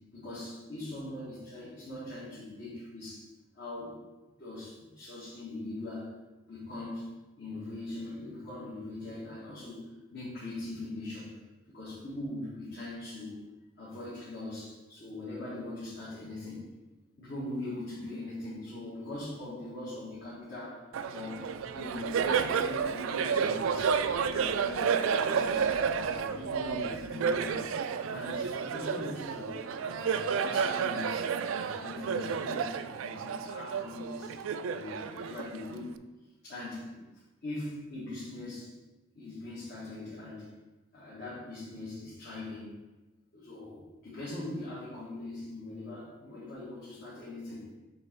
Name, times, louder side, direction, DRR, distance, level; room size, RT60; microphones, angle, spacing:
voice 1, 0.1-3.3 3.5-3.9 4.4-6.2 6.5-11.4 11.7-13.4 13.8-16.7 17.2-24.0 24.3-25.7 26.1-27.7 28.1-34.3 34.6-35.9 36.4-37.0 37.4-38.7 39.2-40.5 40.9-42.7 43.3-47.7, left 2 dB, 50° left, -10 dB, 1.7 m, -41 dB
Laughter, 20.9-35.9, right 6 dB, 80° right, 0.3 m, -31 dB
7.5 x 2.9 x 4.5 m, 1.1 s
head